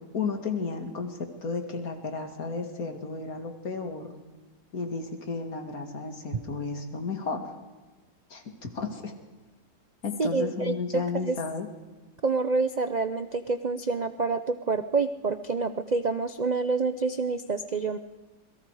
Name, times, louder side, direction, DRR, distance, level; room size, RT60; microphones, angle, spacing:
voice 1, 0.1-4.1 4.7-7.4 8.3-9.1 10.0-11.7, left 4 dB, 55° left, 5 dB, 2.7 m, -33 dB
voice 2, 10.2-11.4 12.2-18.0, right 4 dB, 75° right, 10 dB, 0.4 m, -27 dB
27.0 x 22.5 x 4.9 m, 1.2 s
omnidirectional pair, 1.9 m